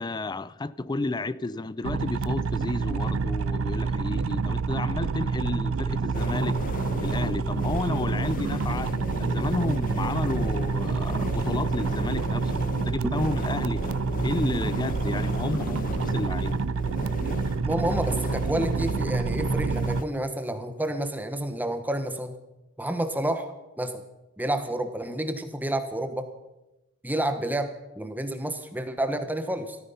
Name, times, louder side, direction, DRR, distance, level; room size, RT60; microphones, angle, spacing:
voice 1, 0.0-6.6 7.0-8.9 9.2-13.9 14.2-16.5, left 2 dB, 20° left, 0.4 m, -32 dB
sound 1, 1.8-20.0, right 4 dB, 65° right, 0.5 m, -28 dB
sound 2, 6.1-20.0, left 2 dB, 40° left, 1.0 m, -35 dB
voice 2, 17.6-22.3 22.8-24.0 24.4-26.3 27.0-29.8, right 1 dB, 10° right, 1.0 m, -29 dB
17.0 x 14.0 x 5.5 m
head